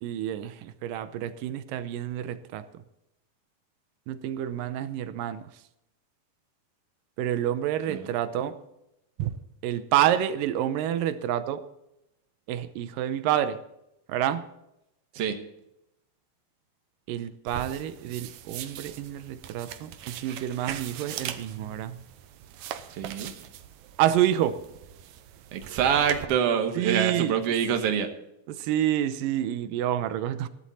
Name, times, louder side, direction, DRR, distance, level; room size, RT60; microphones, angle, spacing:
voice 1, 0.0-2.7 4.1-5.4 7.2-8.5 9.2-9.3 9.6-11.6 12.5-13.6 14.1-14.5 17.1-22.0 24.0-24.6 26.8-27.3 28.5-30.5, right 11 dB, 90° right, 12 dB, 2.5 m, -28 dB
sound 1, 17.5-26.2, right 10 dB, 75° right, 2.0 m, -41 dB
voice 2, 23.0-23.3 25.5-28.1, right 8 dB, 55° right, 6 dB, 1.9 m, -26 dB
15.0 x 11.5 x 4.1 m, 0.86 s
omnidirectional pair, 3.8 m